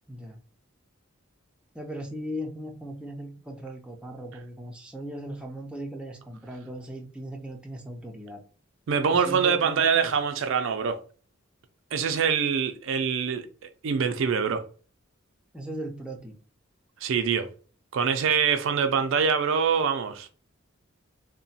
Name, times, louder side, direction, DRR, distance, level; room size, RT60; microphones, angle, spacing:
voice 1, 0.1-0.4 1.7-8.4 9.1-10.0 15.5-16.3, equal, 5° right, 0.4 m, -38 dB
voice 2, 8.9-11.0 11.9-13.5 13.8-14.6 17.0-17.5 17.9-20.3, right 6 dB, 70° right, 0.4 m, -24 dB
2.9 x 2.1 x 2.7 m
head